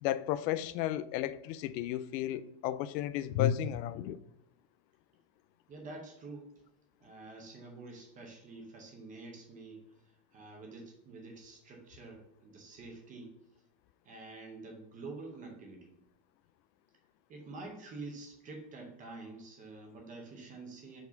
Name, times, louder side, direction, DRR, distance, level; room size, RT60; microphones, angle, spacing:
voice 1, 0.0-4.2, left 11 dB, 90° left, 0.6 m, -33 dB
voice 2, 5.7-6.5 7.0-9.8 10.3-13.3 14.0-15.9 17.3-21.0, right 3 dB, 15° right, 0.7 m, -47 dB
4.9 x 4.2 x 5.2 m
supercardioid pair, 175°, 50 cm